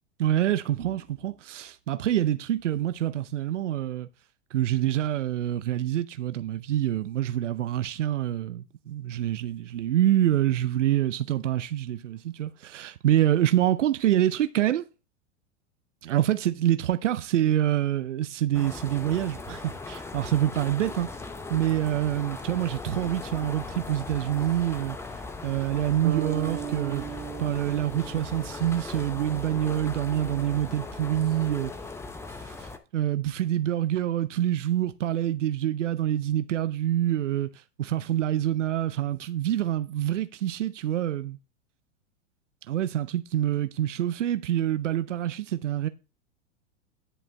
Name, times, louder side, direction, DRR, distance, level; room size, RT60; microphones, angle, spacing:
voice 1, 0.2-4.1 4.5-14.8 16.0-21.1 21.5-25.0 25.4-31.7 32.4-41.4 42.7-45.9, right 12 dB, 90° right, 0.5 m, -26 dB
sound 1, 18.5-32.8, left 3 dB, 5° left, 0.6 m, -38 dB
sound 2, 26.0-30.0, right 11 dB, 50° right, 1.4 m, -38 dB
9.9 x 5.0 x 3.3 m
hypercardioid pair, 105°, 36 cm